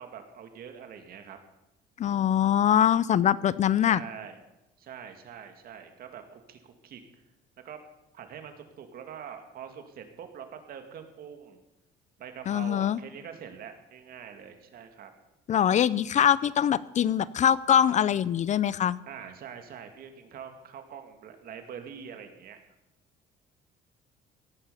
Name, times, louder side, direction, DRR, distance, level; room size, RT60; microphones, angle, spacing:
voice 1, 0.0-1.4 3.9-4.4 4.8-7.0 7.6-7.8 8.1-11.6 12.2-15.1 19.1-22.6, right 8 dB, 60° right, 6 dB, 2.4 m, -44 dB
voice 2, 2.0-4.0 12.5-13.0 15.5-19.0, left 9 dB, 45° left, 19 dB, 0.5 m, -23 dB
17.0 x 8.9 x 7.1 m, 0.96 s
cardioid pair, 110°, 17 cm